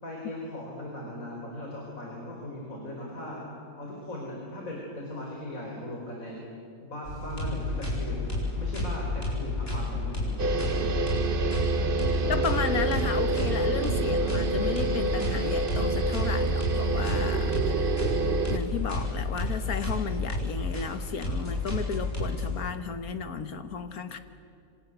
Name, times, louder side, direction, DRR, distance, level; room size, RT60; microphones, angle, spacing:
voice 1, 0.0-3.4 3.8-6.5 6.8-8.3 8.6-10.9, left 1 dB, 65° left, -2 dB, 4.8 m, -38 dB
sound 1, 7.0-14.6 15.3-15.4, equal, 60° right, 6.0 m, -46 dB
sound 2, 7.3-22.4, left 2 dB, 40° left, 7.6 m, -31 dB
sound 3, 10.4-18.6, right 4 dB, 40° right, 1.2 m, -28 dB
voice 2, 12.3-18.2 18.5-24.2, left 6 dB, 85° left, 9 dB, 1.8 m, -34 dB
28.0 x 25.5 x 8.0 m, 2.6 s
omnidirectional pair, 1.5 m